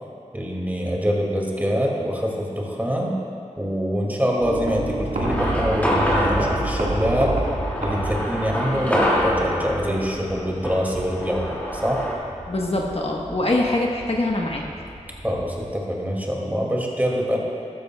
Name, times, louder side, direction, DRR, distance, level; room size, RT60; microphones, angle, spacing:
voice 1, 0.3-3.1 3.6-7.4 7.8-12.1 15.2-17.4, equal, 15° right, -3 dB, 2.1 m, -24 dB
sound 1, 4.4-15.7, right 1 dB, 85° right, 1.7 m, -31 dB
sound 2, 5.2-12.1, equal, 10° left, 2.2 m, -26 dB
voice 2, 12.5-14.6, left 2 dB, 50° left, -1 dB, 1.1 m, -23 dB
14.0 x 12.5 x 2.3 m, 2.5 s
wide cardioid pair, 50°, 13 cm